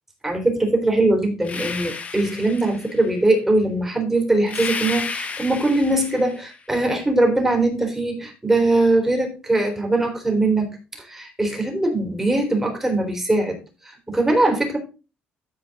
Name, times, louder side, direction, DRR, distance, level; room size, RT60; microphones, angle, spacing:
voice 1, 0.2-14.8, right 2 dB, 10° right, 3 dB, 3.4 m, -21 dB
sound 1, 1.4-3.1 4.5-6.5, left 5 dB, 35° left, 1.5 m, -32 dB
12.5 x 4.7 x 4.0 m, 0.32 s
cardioid pair, 115°, 4 cm